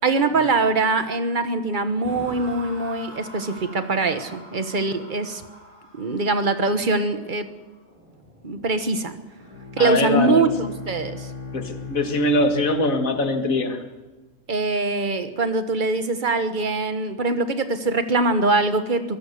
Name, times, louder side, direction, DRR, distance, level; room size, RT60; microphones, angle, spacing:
voice 1, 0.0-5.4 5.9-7.5 8.4-9.2 9.8-11.3 14.5-19.2, right 3 dB, 40° right, 9 dB, 1.4 m, -23 dB
sound 1, 2.0-9.2, equal, 10° right, 7.2 m, -44 dB
Bowed string instrument, 9.4-13.8, left 4 dB, 30° left, 4.9 m, -38 dB
voice 2, 9.8-10.5 11.5-13.8, left 2 dB, 85° left, 6 dB, 2.3 m, -22 dB
23.0 x 17.5 x 6.8 m, 1.2 s
omnidirectional pair, 1.4 m